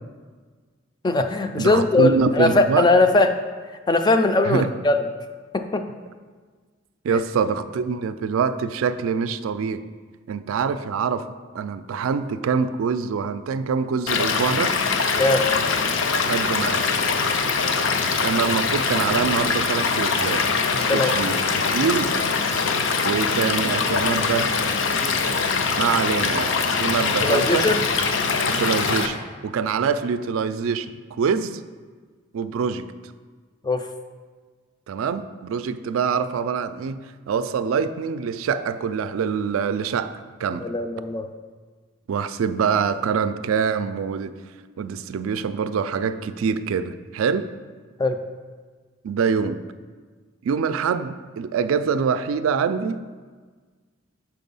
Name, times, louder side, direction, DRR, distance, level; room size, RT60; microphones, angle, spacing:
voice 1, 1.0-3.4 3.9-5.0 5.5-5.8 7.1-7.2 15.2-15.5 20.7-21.1 27.2-27.8 33.6-33.9 40.6-41.3 48.0-48.2, left 2 dB, 20° left, 7 dB, 0.3 m, -20 dB
voice 2, 1.6-2.9 4.5-4.7 7.0-9.8 10.3-11.3 11.5-14.8 16.3-16.9 18.2-20.5 20.8-21.4 21.7-22.2 23.0-24.5 25.7-27.7 28.5-29.2 29.4-31.6 32.3-32.9 34.9-37.0 37.3-40.7 42.1-44.4 44.8-47.5 49.0-49.6 50.4-53.0, right 6 dB, 90° right, 12 dB, 0.3 m, -25 dB
Stream / Liquid, 14.1-29.1, left 5 dB, 70° left, 0.5 m, -23 dB
6.0 x 4.5 x 5.4 m, 1.5 s
head